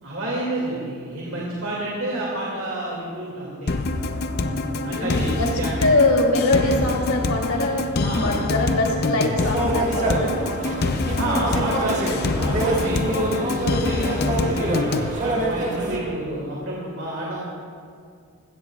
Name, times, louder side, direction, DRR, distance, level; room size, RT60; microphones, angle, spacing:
voice 1, 0.0-3.7 4.3-5.8 8.0-8.3 11.1-17.4, right 1 dB, 60° right, -5 dB, 2.4 m, -29 dB
sound 1, 3.7-15.1, left 3 dB, 45° left, 0.6 m, -25 dB
voice 2, 4.9-5.5 5.8-10.5, left 2 dB, 75° left, -1 dB, 3.0 m, -22 dB
sound 2, 9.4-16.0, right 1 dB, 35° right, 1.7 m, -26 dB
20.0 x 16.5 x 2.4 m, 2.3 s
head